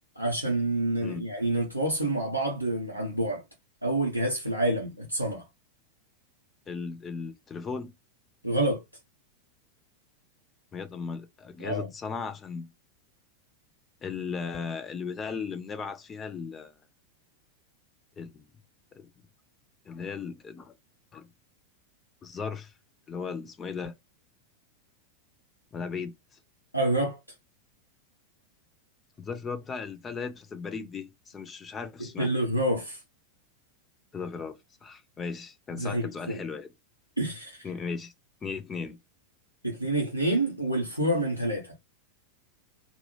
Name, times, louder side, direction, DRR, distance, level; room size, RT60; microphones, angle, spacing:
voice 1, 0.2-3.4 3.8-5.5 8.4-8.8 11.6-11.9 26.7-27.2 32.2-33.0 35.8-36.4 37.2-37.7 39.6-41.7, right 1 dB, 90° left, 0.5 m, -28 dB
voice 2, 6.7-7.9 10.7-12.7 14.0-16.7 18.2-18.4 18.9-19.1 19.9-20.7 21.1-21.3 22.2-22.7 23.1-23.9 25.7-26.1 29.2-32.3 34.1-36.7 37.6-38.1 38.4-39.0, left 5 dB, 20° left, 0.3 m, -36 dB
2.2 x 2.0 x 2.9 m
figure-of-eight pair, 90°, 0 cm